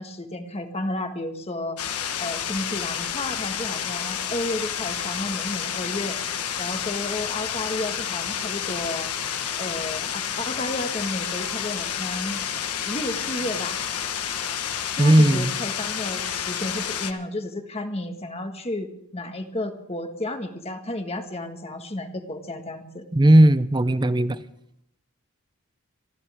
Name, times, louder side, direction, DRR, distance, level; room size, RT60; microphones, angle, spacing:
voice 1, 0.0-1.8 2.2-6.2 6.6-9.1 9.6-13.8 14.9-23.0, left 1 dB, 25° left, 1.6 m, -32 dB
sound 1, 1.8-17.1, left 8 dB, 90° left, 1.3 m, -30 dB
voice 2, 15.0-15.5 23.1-24.4, right 1 dB, 20° right, 0.6 m, -16 dB
25.5 x 14.0 x 3.6 m
head